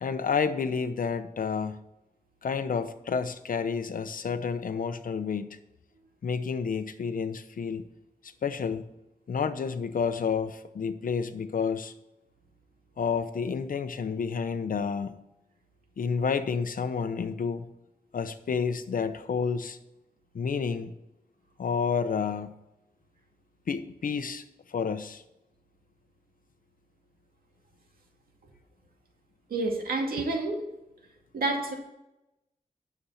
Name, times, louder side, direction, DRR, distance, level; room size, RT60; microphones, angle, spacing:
voice 1, 0.0-1.8 2.4-5.5 6.2-7.8 8.4-8.8 9.3-11.9 13.0-15.1 16.0-17.6 18.1-19.8 20.3-20.9 21.6-22.5 23.7-24.4 24.7-25.2, left 6 dB, 70° left, 10 dB, 0.9 m, -30 dB
voice 2, 29.5-30.6 31.3-31.7, right 2 dB, 90° right, 1 dB, 2.3 m, -28 dB
9.8 x 7.2 x 5.7 m, 0.92 s
wide cardioid pair, 90°, 15 cm